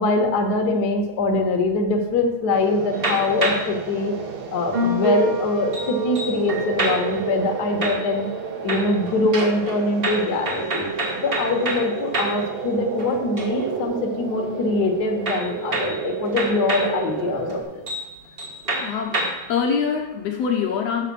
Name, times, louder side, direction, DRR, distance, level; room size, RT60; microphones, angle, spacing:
voice 1, 0.0-4.1 4.5-8.3 8.6-10.9 11.2-17.9, left 2 dB, 50° left, 2 dB, 1.2 m, -23 dB
sound 1, 2.5-17.6, right 5 dB, 65° right, 1.5 m, -31 dB
sound 2, 2.9-3.8 4.7-7.3 7.8-8.4 8.7-12.5 12.9-13.8 15.3-17.0 17.5-17.6 17.9-18.1 18.4-19.5, right 1 dB, 45° right, 0.7 m, -27 dB
voice 2, 18.8-19.2 19.5-21.1, left 6 dB, 70° left, 2 dB, 1.8 m, -24 dB
7.5 x 5.6 x 6.8 m, 0.97 s
omnidirectional pair, 3.3 m